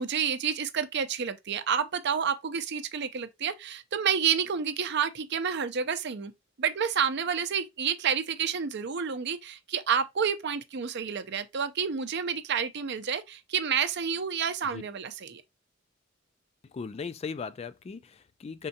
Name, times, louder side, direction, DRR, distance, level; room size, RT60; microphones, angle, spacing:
voice 1, 0.0-6.3 6.6-15.4, right 7 dB, 60° right, 0.6 m, -29 dB
voice 2, 16.7-18.7, left 5 dB, 30° left, 0.3 m, -38 dB
5.3 x 3.7 x 2.7 m
head